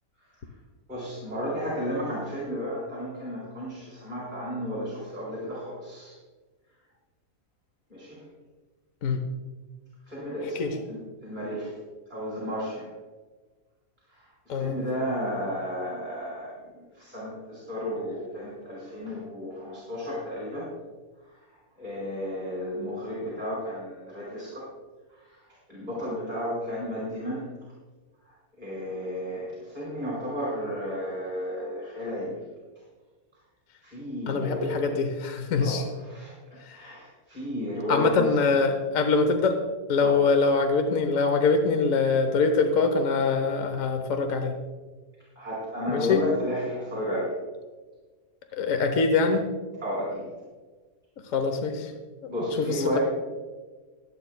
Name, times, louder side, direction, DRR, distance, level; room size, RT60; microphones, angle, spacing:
voice 1, 0.9-6.1 7.9-8.2 10.1-11.7 12.1-12.9 14.1-20.7 21.3-21.4 21.8-24.7 25.1-25.4 25.7-27.4 28.3-32.4 33.8-34.9 35.6-35.8 36.1-36.3 36.7-38.4 40.0-40.2 45.4-47.3 49.8-50.2 52.3-53.0, equal, 25° right, -7 dB, 4.3 m, -33 dB
voice 2, 34.3-35.8 36.7-36.9 37.9-39.6 39.9-44.6 45.9-46.2 48.5-49.5 51.3-51.9 52.2-52.3 52.6-53.0, left 4 dB, 60° left, 6 dB, 1.3 m, -24 dB
24.5 x 9.2 x 2.2 m, 1.3 s
omnidirectional pair, 1.7 m